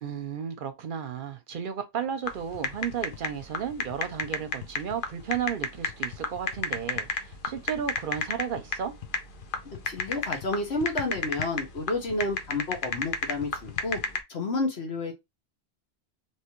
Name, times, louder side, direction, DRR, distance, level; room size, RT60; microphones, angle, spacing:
voice 1, 0.0-8.9, right 8 dB, 60° right, 0.7 m, -33 dB
sound 1, 2.3-14.2, left 5 dB, 55° left, 0.8 m, -32 dB
voice 2, 9.8-14.0 14.3-15.1, left 2 dB, 80° left, 1.5 m, -30 dB
3.3 x 3.0 x 2.9 m
omnidirectional pair, 1.1 m